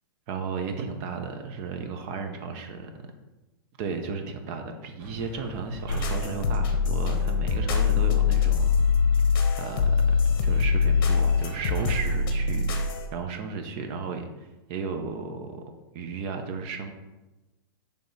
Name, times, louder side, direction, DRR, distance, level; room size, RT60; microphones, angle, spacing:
voice 1, 0.3-3.1 3.8-8.7 9.6-15.6 15.9-16.9, right 4 dB, 35° right, 5 dB, 0.7 m, -34 dB
sound 1, 5.0-12.3, equal, 65° right, 2.0 m, -45 dB
sound 2, 5.9-13.1, left 5 dB, 55° left, 0.9 m, -23 dB
6.8 x 3.5 x 4.0 m, 1.1 s
hypercardioid pair, 150°, 13 cm